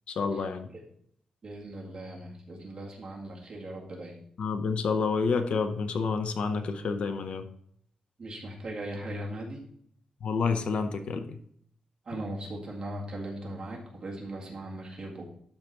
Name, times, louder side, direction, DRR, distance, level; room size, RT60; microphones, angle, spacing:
voice 1, 0.1-0.7 4.4-7.5 10.2-11.4, left 5 dB, 65° left, 0.7 m, -29 dB
voice 2, 1.4-4.1 8.2-9.6 12.1-15.3, right 1 dB, 35° right, 2.0 m, -39 dB
12.0 x 4.1 x 4.6 m
wide cardioid pair, 155°, 2 cm